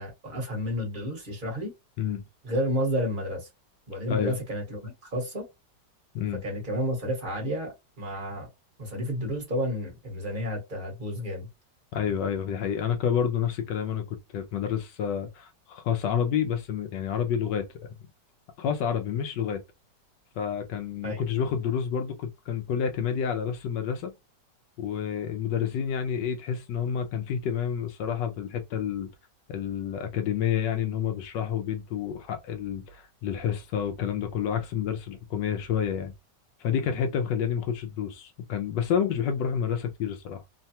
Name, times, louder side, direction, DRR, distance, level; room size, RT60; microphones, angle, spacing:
voice 1, 0.0-1.7 2.4-3.5 3.9-5.4 6.4-8.5 8.8-11.5 21.0-21.3, equal, 30° right, 1.1 m, -31 dB
voice 2, 11.9-17.7 18.6-19.6 20.4-24.1 24.8-29.1 29.5-36.1 36.6-40.4, left 8 dB, 80° left, 1.2 m, -29 dB
3.1 x 2.2 x 2.7 m
omnidirectional pair, 1.9 m